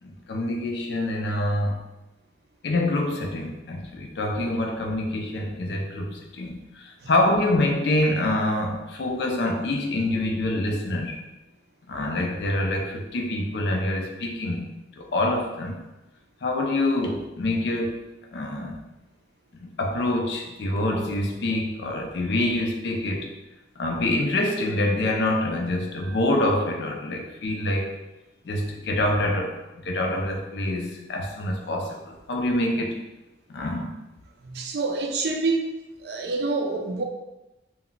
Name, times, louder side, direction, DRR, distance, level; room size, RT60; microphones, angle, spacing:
voice 1, 0.0-1.8 2.6-11.2 11.9-15.8 16.4-18.0 18.3-18.8 19.6-23.3 23.8-27.9 28.4-29.6 29.8-33.0 33.5-34.0, left 1 dB, 65° left, 2 dB, 0.4 m, -26 dB
voice 2, 34.4-35.6 36.0-37.0, right 3 dB, 60° right, 3 dB, 0.4 m, -27 dB
2.2 x 2.1 x 3.7 m, 0.99 s
head